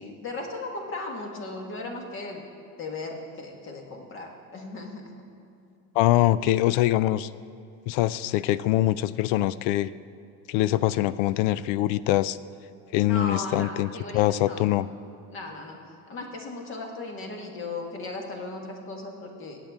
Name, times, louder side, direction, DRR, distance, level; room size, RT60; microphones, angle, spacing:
voice 1, 0.0-2.4 2.8-5.3 13.0-14.8 15.3-15.8 16.1-19.6, left 2 dB, 30° left, 2 dB, 1.6 m, -37 dB
voice 2, 6.0-7.3 7.9-9.9 10.5-12.4 12.9-14.9, left 14 dB, 70° left, 17 dB, 0.5 m, -23 dB
22.5 x 9.0 x 3.6 m, 2.5 s
cardioid pair, 155°, 39 cm